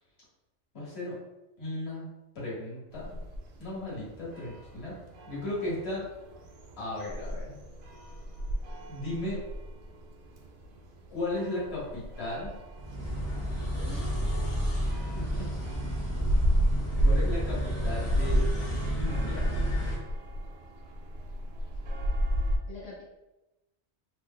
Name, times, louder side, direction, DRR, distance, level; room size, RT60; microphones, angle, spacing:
voice 1, 0.7-1.2 1.6-2.1 2.3-3.2 3.6-5.0 5.3-6.1 6.8-7.6 8.9-9.4 11.1-12.5 14.9-15.5 17.0-18.4 19.0-19.5, left 1 dB, 60° left, -6 dB, 1.4 m, -35 dB
sound 1, 2.9-22.6, equal, 60° right, 0.6 m, -33 dB
sound 2, 12.8-20.0, equal, 20° left, 0.5 m, -32 dB
voice 2, 13.8-15.0 22.7-23.1, left 3 dB, 80° left, -7 dB, 1.1 m, -46 dB
2.8 x 2.0 x 3.5 m, 0.99 s
omnidirectional pair, 1.3 m